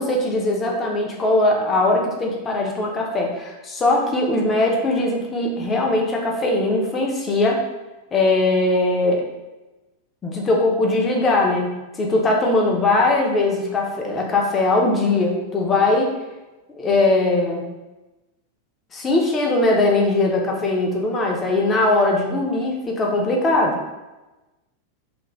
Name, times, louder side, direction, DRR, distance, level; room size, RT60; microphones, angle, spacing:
voice 1, 0.0-7.6 8.1-9.2 10.2-16.1 16.8-17.7 18.9-23.8, left 2 dB, 20° left, 0 dB, 0.6 m, -20 dB
2.4 x 2.4 x 3.1 m, 1.1 s
figure-of-eight pair, 90°, 0 cm